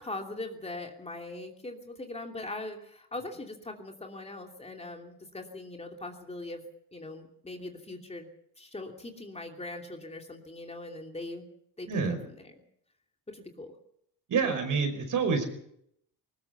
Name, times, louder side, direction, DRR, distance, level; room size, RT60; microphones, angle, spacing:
voice 1, 0.0-6.6 6.9-8.3 8.6-11.5 11.8-12.5 13.3-13.7, left 2 dB, 15° left, 2 dB, 2.9 m, -41 dB
voice 2, 11.9-12.3 14.3-15.5, right 5 dB, 55° right, 7 dB, 5.2 m, -27 dB
20.0 x 19.5 x 7.0 m, 0.72 s
cardioid pair, 110°, 38 cm